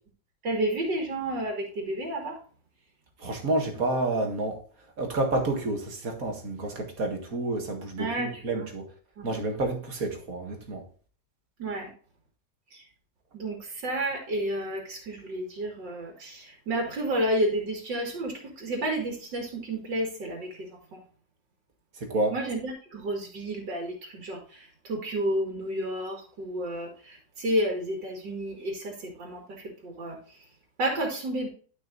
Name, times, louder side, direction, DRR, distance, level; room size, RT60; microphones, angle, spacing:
voice 1, 0.4-2.4 8.0-8.7 9.2-9.3 11.6-11.9 12.7-12.8 13.3-21.0 22.3-30.4 30.8-31.5, right 1 dB, 85° right, 2.7 m, -31 dB
voice 2, 3.2-4.6 5.0-8.9 9.2-10.8 22.0-22.3, right 2 dB, 55° right, 2.2 m, -29 dB
13.0 x 6.1 x 2.6 m
omnidirectional pair, 1.9 m